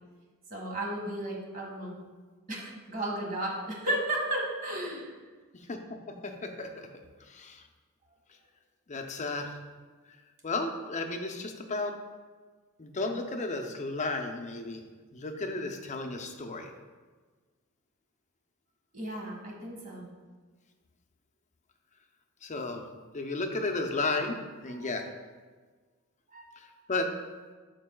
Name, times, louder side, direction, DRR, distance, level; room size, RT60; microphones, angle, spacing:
voice 1, 0.5-1.9 2.5-5.1 18.9-20.1 24.7-24.9 26.3-26.7, right 1 dB, 40° right, -2 dB, 1.7 m, -34 dB
voice 2, 5.5-6.9 7.3-7.6 8.9-9.6 10.4-11.9 12.8-14.8 15.1-16.7 22.4-22.8 23.1-24.4 24.6-25.1 26.9-27.1, left 3 dB, 35° left, 4 dB, 0.6 m, -33 dB
12.0 x 4.7 x 2.3 m, 1.4 s
head